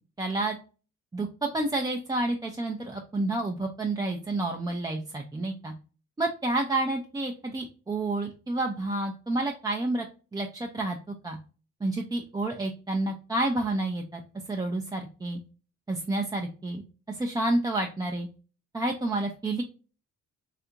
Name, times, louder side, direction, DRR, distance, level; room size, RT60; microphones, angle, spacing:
voice 1, 0.2-0.6 1.1-5.7 6.2-10.1 10.3-11.0 11.2-11.4 11.8-14.2 14.5-15.4 15.9-16.8 17.1-18.3 18.7-19.6, right 2 dB, 15° right, 1 dB, 0.4 m, -29 dB
3.4 x 2.4 x 2.8 m, 0.35 s
cardioid pair, 90°, 30 cm